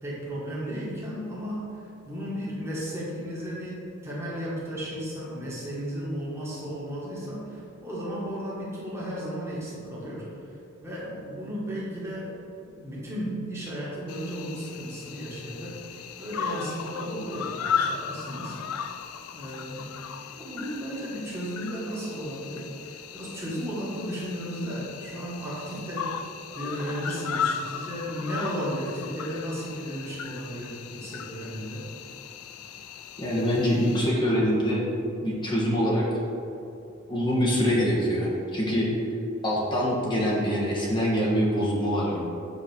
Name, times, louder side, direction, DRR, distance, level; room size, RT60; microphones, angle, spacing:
voice 1, 0.0-10.5 10.8-18.6 19.3-19.9 20.4-31.9, equal, 15° right, -7 dB, 1.9 m, -34 dB
Cricket, 14.1-34.0, left 7 dB, 90° left, 0.4 m, -36 dB
voice 2, 33.2-34.8 35.2-36.1 37.1-38.9 39.4-42.2, equal, 20° left, -5 dB, 1.5 m, -24 dB
6.7 x 4.6 x 6.1 m, 2.6 s
head